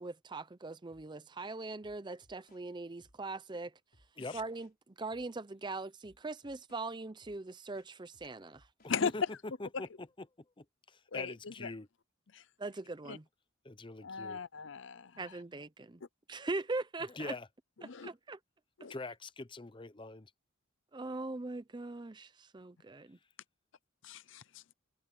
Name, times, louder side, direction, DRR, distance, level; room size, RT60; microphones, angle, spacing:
voice 1, 0.0-3.7 4.3-8.6 12.6-13.2 15.2-16.0 16.3-17.3 18.0-18.4 20.9-23.2, right 3 dB, 20° right, 0.6 m, -41 dB
sound 1, 0.9-1.1 1.4-2.6 3.0-3.2 3.5-4.7 5.1-5.3 5.6-6.9 7.2-7.4 7.7-9.0, left 1 dB, 45° left, 5.3 m, -67 dB
voice 2, 8.8-9.2 9.6-10.3 10.6-11.9 13.6-14.4 17.1-17.5 18.9-20.3, left 2 dB, 25° left, 0.7 m, -43 dB
voice 3, 11.1-11.7 12.3-12.4 13.1-13.2 14.0-15.4 17.8-18.1 18.8-18.9 24.0-24.6, left 6 dB, 65° left, 0.6 m, -38 dB
open air
head